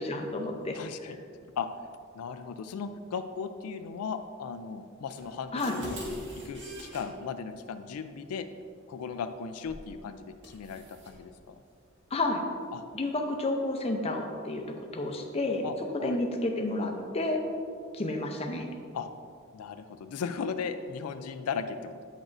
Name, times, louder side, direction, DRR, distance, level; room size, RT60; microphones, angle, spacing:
voice 1, 0.1-0.8 1.0-1.1 5.5-5.8 12.1-12.4 12.9-15.7 16.0-17.4 17.9-18.7, left 2 dB, 30° left, 3 dB, 0.6 m, -30 dB
voice 2, 0.7-1.2 1.6-1.7 2.1-6.0 6.4-8.5 8.9-11.6 12.7-12.8 15.6-16.2 18.9-19.1 19.5-22.0, left 6 dB, 90° left, 9 dB, 0.4 m, -37 dB
sound 1, 5.2-7.0 9.7-9.9 10.4-11.2, left 1 dB, 55° right, 1.5 m, -41 dB
9.0 x 6.0 x 2.6 m, 2.3 s
head